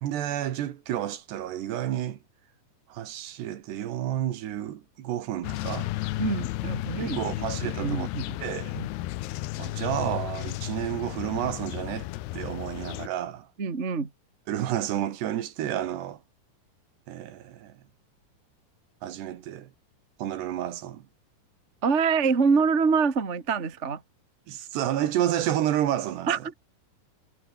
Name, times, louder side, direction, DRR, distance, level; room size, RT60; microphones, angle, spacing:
voice 1, 0.0-2.2 2.9-5.9 7.0-8.1 8.4-8.7 9.6-12.1 12.3-13.5 14.5-16.2 17.1-17.7 19.0-19.7 20.2-21.0 24.5-26.3, right 11 dB, 70° right, 3.7 m, -30 dB
sound 1, 5.4-13.1, left 17 dB, 75° left, 2.7 m, -33 dB
voice 2, 6.2-7.5 7.8-8.4 8.7-8.9 13.6-14.1 21.8-24.0 26.3-26.6, right 5 dB, 25° right, 1.4 m, -25 dB
omnidirectional pair, 5.2 m